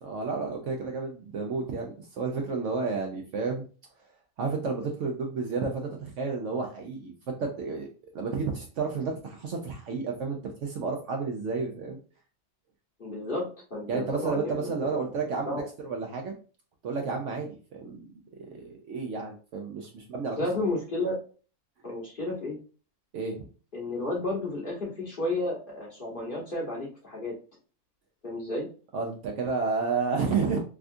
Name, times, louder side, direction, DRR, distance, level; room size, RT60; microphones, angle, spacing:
voice 1, 0.0-3.6 4.4-7.9 8.1-12.0 13.9-16.3 16.8-18.0 18.4-20.4 23.1-23.5 28.9-30.6, right 4 dB, 65° right, 2 dB, 0.8 m, -31 dB
voice 2, 13.0-15.1 15.5-15.6 20.4-21.2 21.8-22.6 23.7-27.3 28.2-28.7, left 2 dB, 40° left, -2 dB, 1.0 m, -32 dB
3.5 x 2.3 x 2.5 m, 0.37 s
omnidirectional pair, 1.6 m